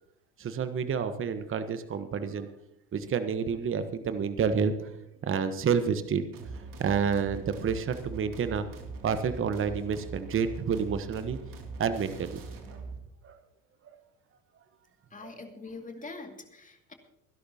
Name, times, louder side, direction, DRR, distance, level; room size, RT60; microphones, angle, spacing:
voice 1, 0.4-2.5 2.9-4.9 5.2-6.3 6.8-8.7 9.0-11.4 11.8-12.4 12.7-12.8 13.2-13.4, right 6 dB, 25° right, 11 dB, 1.2 m, -29 dB
sound 1, 6.3-13.0, right 3 dB, 45° right, 2.8 m, -42 dB
voice 2, 15.1-16.9, left 3 dB, 15° left, 4 dB, 2.4 m, -43 dB
24.5 x 11.5 x 2.9 m, 0.81 s
hypercardioid pair, 70°, 46 cm